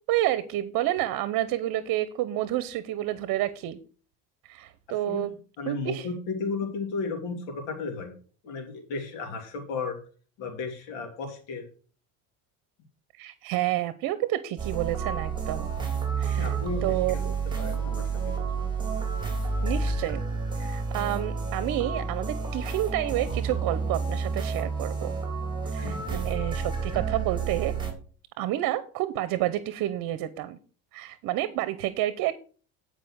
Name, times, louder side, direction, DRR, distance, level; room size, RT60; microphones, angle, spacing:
voice 1, 0.1-3.8 4.5-5.3 5.7-6.1 13.1-15.7 16.2-16.5 16.8-17.3 19.6-20.2 20.6-25.1 25.7-27.7 28.4-30.6 30.9-32.3, right 14 dB, 60° right, 15 dB, 0.9 m, -29 dB
voice 2, 5.1-8.1 8.4-10.0 10.4-11.7 16.4-17.2 17.6-18.7 25.8-26.2, left 4 dB, 90° left, 3 dB, 2.8 m, -34 dB
sound 1, 14.6-27.9, right 5 dB, 10° right, 3.1 m, -30 dB
10.0 x 5.1 x 6.3 m, 0.40 s
cardioid pair, 120°, 38 cm